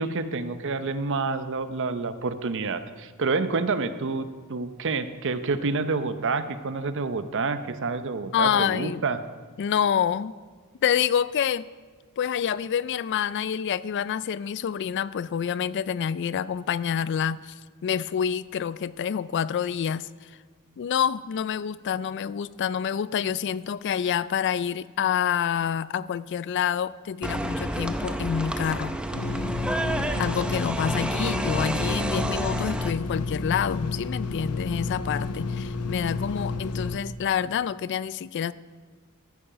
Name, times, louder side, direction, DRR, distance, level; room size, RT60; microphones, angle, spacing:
voice 1, 0.0-9.2, right 4 dB, 60° right, 11 dB, 0.7 m, -28 dB
voice 2, 8.3-9.0 9.6-10.3 10.8-11.7 12.2-17.5 17.8-20.1 20.8-29.0 30.2-38.5, left 8 dB, 55° left, 18 dB, 0.3 m, -27 dB
sound 1, 27.2-32.9, right 1 dB, 5° right, 0.6 m, -30 dB
sound 2, 29.1-37.0, left 3 dB, 85° left, 0.7 m, -31 dB
14.5 x 8.8 x 5.6 m, 1.5 s
head